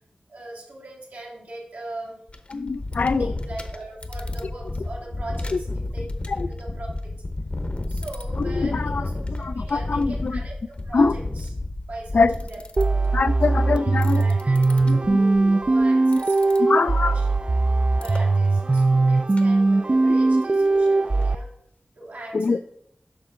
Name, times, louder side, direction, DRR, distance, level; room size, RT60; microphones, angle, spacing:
voice 1, 0.3-2.2 3.2-7.2 7.9-11.5 11.9-12.6 13.5-17.3 18.0-21.5 22.0-22.6, right 2 dB, 85° right, 2.5 m, -40 dB
sound 1, 2.3-13.1 13.8-15.8 16.1-16.6 18.0-18.2 18.8-19.0 19.4-19.5 19.7-19.8 20.1-20.2 20.7-20.8 21.2-21.3, left 2 dB, 45° left, 0.8 m, -32 dB
voice 2, 2.5-3.3 6.4-6.5 8.4-9.0 9.3-10.4 10.9-11.2 12.1-12.3 13.1-14.2 14.9-15.2 16.6-17.2 22.3-22.6, left 4 dB, 65° left, 0.3 m, -23 dB
sound 2, 12.8-21.4, right 3 dB, 35° right, 0.3 m, -20 dB
8.7 x 5.9 x 3.7 m
wide cardioid pair, 75°, 3 cm